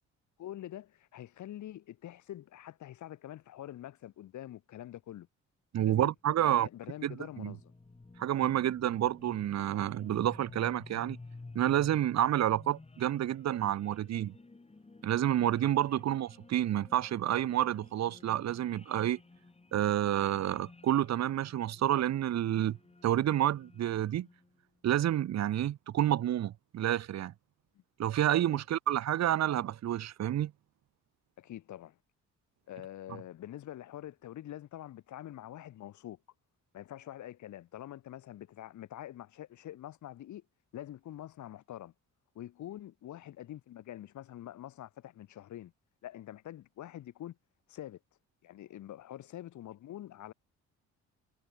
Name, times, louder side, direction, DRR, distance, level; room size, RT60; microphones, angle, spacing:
voice 1, 0.4-5.3 5.8-7.7 15.9-16.0 28.4-28.6 31.4-32.0 32.7-36.2 36.7-40.4 40.7-41.9 42.4-45.7 46.0-47.4 47.7-48.0 48.4-50.3, left 12 dB, 70° left, 2.0 m, -45 dB
voice 2, 5.7-6.7 7.0-7.5 8.2-11.2 11.5-14.3 15.0-19.2 19.7-22.8 23.0-24.3 24.8-27.3 28.0-30.5, right 12 dB, 60° right, 1.1 m, -29 dB
sound 1, 6.2-24.6, left 3 dB, 20° left, 7.6 m, -54 dB
cardioid pair, 90°, 30 cm